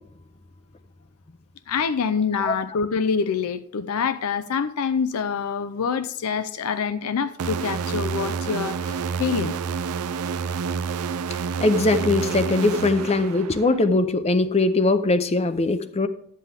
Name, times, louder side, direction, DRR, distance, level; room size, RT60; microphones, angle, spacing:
voice 1, 1.7-9.6, left 6 dB, 80° left, 0.5 m, -26 dB
sound 1, 7.4-13.9, right 5 dB, 90° right, 0.5 m, -28 dB
voice 2, 11.6-16.1, left 2 dB, 30° left, 0.5 m, -21 dB
11.0 x 7.6 x 3.4 m
head